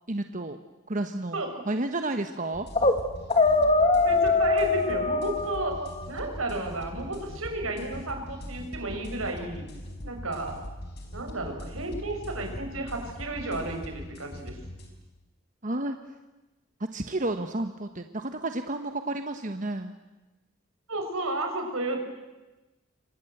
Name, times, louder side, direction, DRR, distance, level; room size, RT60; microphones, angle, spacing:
voice 1, 0.1-0.6 0.9-1.4 1.7-2.7 10.0-10.1 15.6-16.0 16.9-20.0, right 2 dB, 40° right, 7 dB, 1.2 m, -31 dB
sound 1, 2.5-14.9, equal, 50° left, 4.9 m, -41 dB
sound 2, 2.5-3.0 3.3-6.1, left 3 dB, 30° left, 2.1 m, -23 dB
voice 2, 4.0-5.8 6.1-9.7 10.0-10.6 11.1-14.6 20.9-22.0, right 2 dB, 80° right, 4 dB, 6.0 m, -32 dB
28.0 x 25.0 x 8.0 m, 1.1 s
head